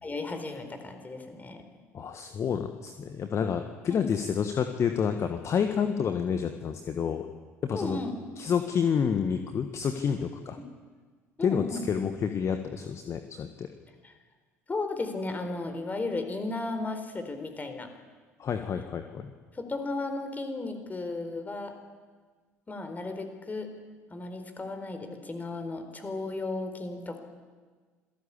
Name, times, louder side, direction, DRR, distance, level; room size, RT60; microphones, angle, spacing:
voice 1, 0.0-1.6 3.9-4.0 7.7-8.1 10.6-10.7 11.4-11.9 14.0-14.1 14.7-17.9 19.5-21.7 22.7-23.7 24.1-27.2, left 3 dB, 20° left, 7 dB, 4.3 m, -34 dB
voice 2, 1.9-7.3 7.6-8.0 8.4-10.6 11.4-13.7 18.4-19.3, left 7 dB, 40° left, 8 dB, 1.5 m, -29 dB
27.0 x 17.5 x 8.6 m, 1.5 s
figure-of-eight pair, 60°, 8 cm